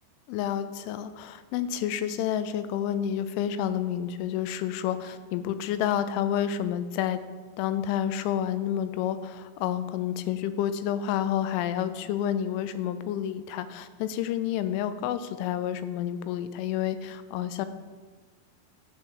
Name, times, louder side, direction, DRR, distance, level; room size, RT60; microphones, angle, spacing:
voice 1, 0.3-7.2 7.6-17.7, left 10 dB, 90° left, 12 dB, 3.1 m, -29 dB
12.0 x 4.6 x 7.1 m, 1.4 s
omnidirectional pair, 5.4 m